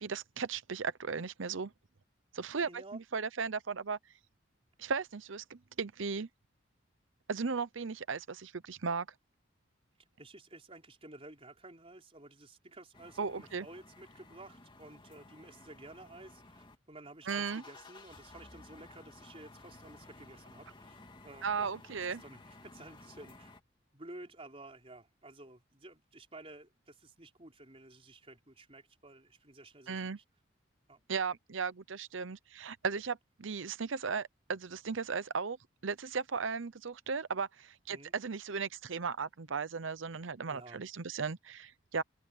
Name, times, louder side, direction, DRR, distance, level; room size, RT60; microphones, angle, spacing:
voice 1, 0.0-1.7 2.3-4.0 4.8-6.3 7.3-9.1 13.2-13.7 17.3-17.6 21.4-22.2 29.9-30.2 31.1-35.6 35.8-42.0, right 5 dB, 75° right, 0.8 m, -36 dB
voice 2, 2.6-3.0 10.2-23.5 23.9-30.2 30.9-31.1 37.9-38.1 40.5-40.8, right 2 dB, 30° right, 4.4 m, -53 dB
sound 1, 12.9-16.8 17.1-23.6, left 2 dB, 25° left, 2.6 m, -55 dB
open air
head